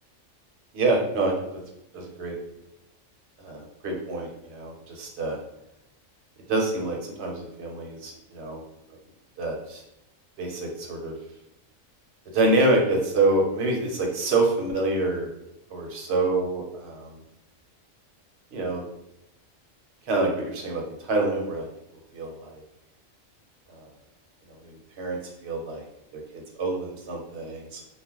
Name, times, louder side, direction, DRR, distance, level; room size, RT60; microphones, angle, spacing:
voice 1, 0.7-1.3 1.9-2.4 3.4-5.4 6.5-8.6 9.4-9.8 10.4-11.2 12.3-15.3 15.7-17.1 18.5-18.8 20.1-21.7 22.1-22.6 23.7-23.8 24.6-25.8 26.1-26.2 26.6-27.8, right 2 dB, 60° right, 1 dB, 0.9 m, -26 dB
2.4 x 2.1 x 3.6 m, 0.85 s
omnidirectional pair, 1.4 m